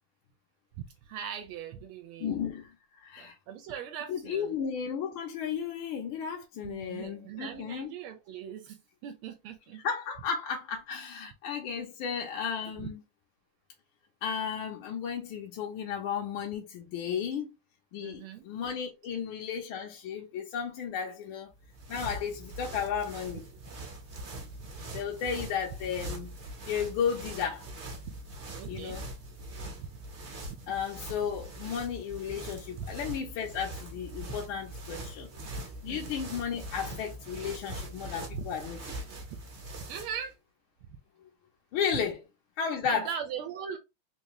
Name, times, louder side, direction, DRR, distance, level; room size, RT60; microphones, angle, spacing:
voice 1, 0.8-2.4 3.2-4.6 6.6-9.8 11.7-11.8 12.7-12.9 18.0-18.5 24.2-24.7 28.1-28.2 28.5-29.0 29.7-29.9 30.5-30.6 32.8-32.9 35.9-36.1 38.3-38.5 39.9-40.4 42.8-43.8, right 8 dB, 80° right, 1.4 m, -40 dB
voice 2, 2.2-2.7 3.0-3.4 4.1-7.9 9.8-13.0 14.2-17.5 17.9-21.5 21.9-23.5 24.9-26.3 26.6-27.6 28.7-29.0 30.7-35.4 35.8-38.8 41.7-42.2 42.6-43.1, left 7 dB, 75° left, 1.5 m, -34 dB
sound 1, 21.5-40.3, right 1 dB, 45° right, 0.9 m, -42 dB
3.8 x 2.7 x 3.1 m
omnidirectional pair, 2.4 m